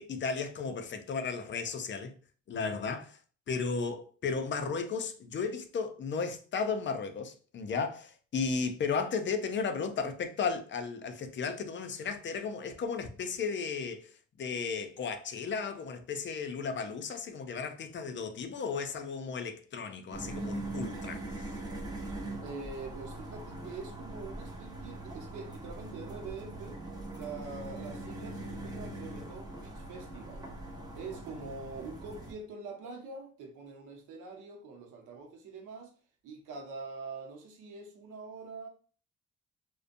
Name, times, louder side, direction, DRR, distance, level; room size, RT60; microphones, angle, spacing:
voice 1, 0.0-2.1 2.5-3.2 3.5-21.5, left 5 dB, 40° left, 0.4 m, -34 dB
sound 1, 20.1-32.3, right 2 dB, 15° right, 0.7 m, -41 dB
voice 2, 22.4-26.8 27.1-30.5 30.9-35.9 36.2-38.7, right 4 dB, 90° right, 0.7 m, -44 dB
2.4 x 2.2 x 2.5 m
cardioid pair, 90°, 30 cm